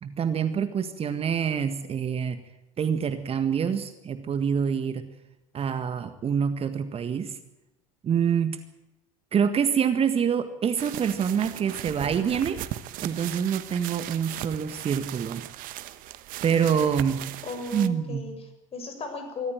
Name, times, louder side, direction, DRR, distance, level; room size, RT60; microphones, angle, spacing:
voice 1, 0.0-2.4 2.8-5.1 5.5-7.4 8.0-8.6 9.3-12.6 13.0-15.4 16.4-17.2 17.7-18.3, right 7 dB, 35° right, 10 dB, 1.8 m, -26 dB
sound 1, 10.8-17.9, right 14 dB, 55° right, 1.2 m, -38 dB
voice 2, 17.4-19.5, left 3 dB, 35° left, 6 dB, 6.3 m, -36 dB
23.5 x 14.5 x 9.1 m, 0.93 s
hypercardioid pair, 70°, 17 cm